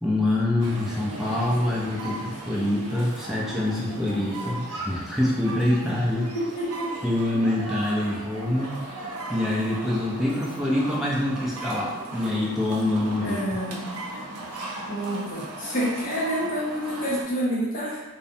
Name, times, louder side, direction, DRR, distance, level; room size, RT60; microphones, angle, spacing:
voice 1, 0.0-6.3 7.0-8.8 9.3-13.4, left 1 dB, ahead, -5 dB, 0.3 m, -25 dB
sound 1, 0.6-17.2, right 2 dB, 85° right, 0.5 m, -37 dB
voice 2, 6.3-6.9 13.2-13.9 14.9-18.0, equal, 35° left, -6 dB, 0.6 m, -28 dB
2.6 x 2.1 x 2.6 m, 1.1 s
head